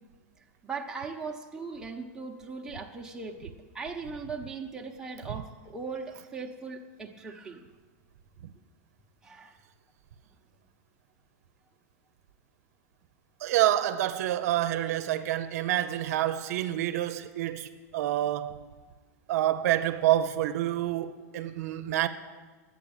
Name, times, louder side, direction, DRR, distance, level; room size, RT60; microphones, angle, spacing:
voice 1, 0.6-7.6 9.2-9.6, right 4 dB, 10° right, 1.1 m, -39 dB
voice 2, 13.4-18.6 19.3-22.1, right 13 dB, 70° right, 0.7 m, -27 dB
11.5 x 8.9 x 8.9 m
supercardioid pair, 145°, 9 cm